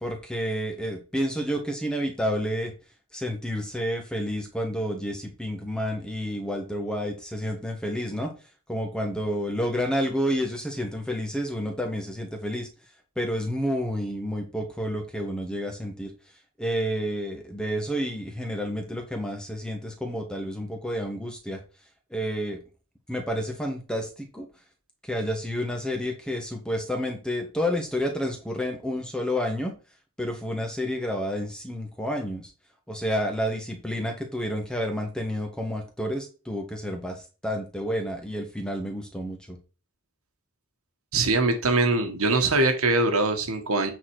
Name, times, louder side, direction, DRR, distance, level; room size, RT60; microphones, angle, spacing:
voice 1, 0.0-2.7 3.1-8.3 8.7-12.7 13.2-16.1 16.6-21.6 22.1-22.6 23.1-24.5 25.0-29.7 30.2-32.5 32.9-39.6, equal, 5° left, 3 dB, 1.4 m, -30 dB
voice 2, 41.1-43.9, right 2 dB, 80° right, 6 dB, 1.6 m, -22 dB
8.7 x 4.3 x 4.8 m, 0.33 s
head